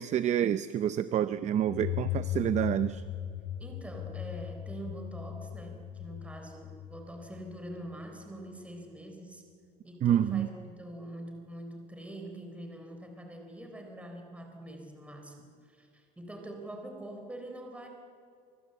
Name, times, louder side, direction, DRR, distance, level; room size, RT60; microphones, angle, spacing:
voice 1, 0.0-3.0 10.0-10.5, right 10 dB, 35° right, 13 dB, 0.6 m, -28 dB
sound 1, 1.7-8.2, left 13 dB, 70° left, 3.6 m, -38 dB
voice 2, 3.6-9.4 9.8-17.9, right 1 dB, 5° right, 3 dB, 3.9 m, -44 dB
28.5 x 25.5 x 7.9 m, 2.4 s
cardioid pair, 150°, 20 cm